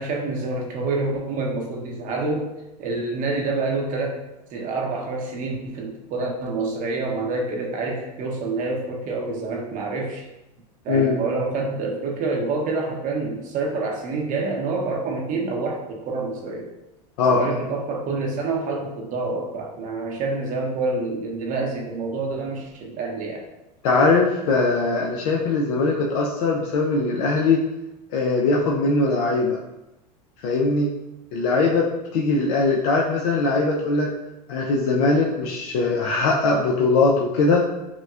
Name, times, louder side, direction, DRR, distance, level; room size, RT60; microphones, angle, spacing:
voice 1, 0.0-2.5 2.8-4.2 4.5-10.2 10.8-16.7 17.3-23.4, right 3 dB, 40° right, 0 dB, 0.7 m, -27 dB
voice 2, 23.8-27.6 28.1-29.6 30.4-30.9 31.3-34.1 34.5-37.6, left 3 dB, 65° left, -2 dB, 0.6 m, -21 dB
5.9 x 2.2 x 2.4 m, 0.95 s
hypercardioid pair, 110°, 20 cm